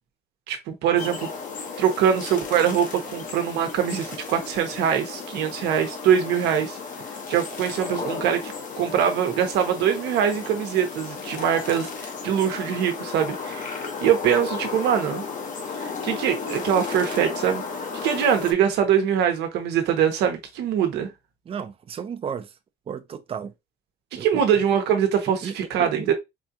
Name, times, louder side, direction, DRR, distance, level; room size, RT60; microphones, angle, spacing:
voice 1, 0.5-1.3 1.8-6.8 7.3-15.2 15.8-17.6 18.0-21.1 24.1-26.1, right 8 dB, 85° right, 1.2 m, -23 dB
sound 1, 1.0-18.5, left 4 dB, 50° left, 1.1 m, -34 dB
voice 2, 21.5-22.5 22.9-23.5 24.1-24.4 25.4-26.1, right 7 dB, 35° right, 0.6 m, -34 dB
4.8 x 2.5 x 2.8 m
cardioid pair, 110°, 17 cm